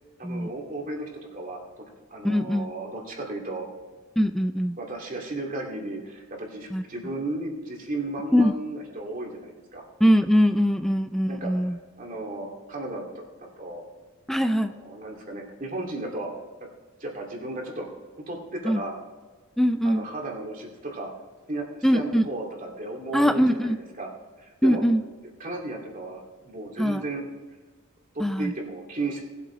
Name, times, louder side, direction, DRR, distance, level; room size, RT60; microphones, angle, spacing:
voice 1, 0.2-1.6 2.1-3.7 4.8-9.8 11.3-11.5 12.0-13.8 14.6-16.3 17.0-17.9 18.3-19.0 19.8-21.1 21.5-24.1 24.4-24.8 25.4-27.2 28.1-29.2, right 2 dB, 40° right, 0 dB, 2.5 m, -34 dB
voice 2, 2.2-2.7 4.2-4.8 6.7-6.8 8.3-8.5 10.0-11.8 14.3-14.7 18.6-18.8 19.6-20.1 21.8-22.3 23.1-23.8 24.6-25.0 26.8-27.0 28.2-28.5, equal, ahead, 9 dB, 0.4 m, -22 dB
19.5 x 7.8 x 3.8 m, 1.3 s
head